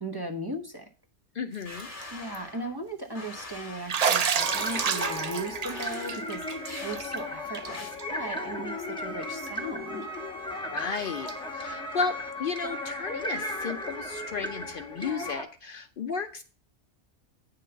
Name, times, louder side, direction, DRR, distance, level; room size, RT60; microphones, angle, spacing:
voice 1, 0.0-0.9 2.1-10.1, right 1 dB, 25° right, 1 dB, 0.8 m, -37 dB
voice 2, 1.3-1.9 10.7-16.4, left 5 dB, 60° left, 6 dB, 0.7 m, -34 dB
Bathtub (filling or washing), 1.6-2.0 2.3-2.4 3.9-7.2 7.5-7.7 8.0-8.1 9.5-9.6 11.3-11.4, right 7 dB, 55° right, 0.4 m, -29 dB
sound 1, 1.7-2.8 3.2-4.1 4.7-5.3 5.7-6.1 6.7-7.0 7.7-7.9, left 2 dB, 30° left, 1.6 m, -43 dB
sound 2, 4.4-15.4, left 1 dB, 5° left, 1.3 m, -35 dB
9.0 x 3.8 x 6.8 m, 0.35 s
omnidirectional pair, 1.2 m